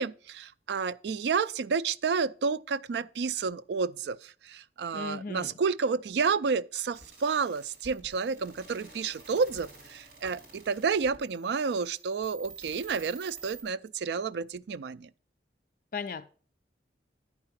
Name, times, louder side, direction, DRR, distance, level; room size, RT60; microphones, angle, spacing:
voice 1, 0.0-15.1, right 5 dB, 75° right, 0.4 m, -30 dB
voice 2, 4.9-5.5 15.9-16.3, left 5 dB, 50° left, 0.4 m, -36 dB
sound 1, 6.9-13.6, right 4 dB, 55° right, 3.2 m, -50 dB
9.8 x 4.7 x 5.8 m
head